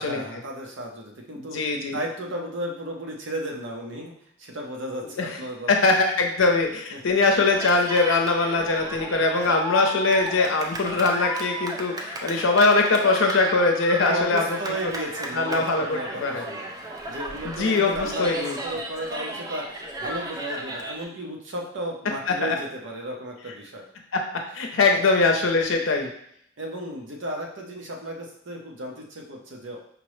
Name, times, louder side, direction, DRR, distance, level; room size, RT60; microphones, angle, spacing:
voice 1, 0.0-1.6 1.9-4.1 4.4-6.0 6.9-7.0 13.9-16.7 17.1-23.8 24.9-25.0 26.6-29.8, right 1 dB, 70° right, 0 dB, 0.8 m, -34 dB
voice 2, 1.4-2.0 5.2-5.4 5.7-14.6 14.8-14.9 15.3-16.5 17.4-18.6 22.3-22.6 24.1-24.2 24.5-26.1, left 3 dB, 80° left, 3 dB, 0.6 m, -22 dB
Cheering, 7.4-21.0, right 1 dB, 20° right, 0.3 m, -34 dB
5.1 x 2.0 x 3.1 m, 0.68 s
head